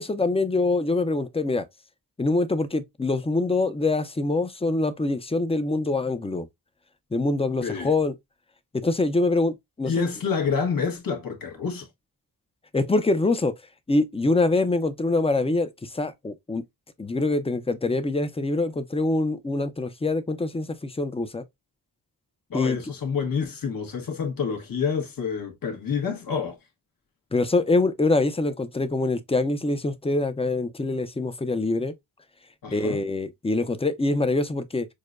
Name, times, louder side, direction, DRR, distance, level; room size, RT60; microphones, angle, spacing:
voice 1, 0.0-1.7 2.2-6.5 7.1-8.1 8.7-10.1 12.7-13.5 13.9-16.6 17.0-21.4 22.5-22.8 27.3-31.9 32.7-34.9, left 2 dB, 15° left, 0.6 m, -24 dB
voice 2, 7.6-7.9 9.9-11.9 22.5-26.6 32.6-33.0, left 6 dB, 60° left, 1.3 m, -28 dB
6.4 x 2.2 x 2.5 m
wide cardioid pair, 95°, 38 cm